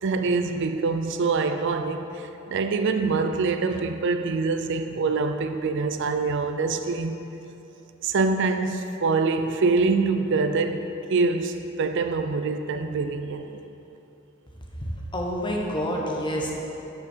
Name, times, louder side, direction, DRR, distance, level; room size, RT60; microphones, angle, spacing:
voice 1, 0.0-7.2 8.0-13.6, right 4 dB, 60° right, 7 dB, 0.4 m, -25 dB
voice 2, 15.1-16.5, equal, 25° left, -1 dB, 1.2 m, -27 dB
12.0 x 6.1 x 4.5 m, 3.0 s
head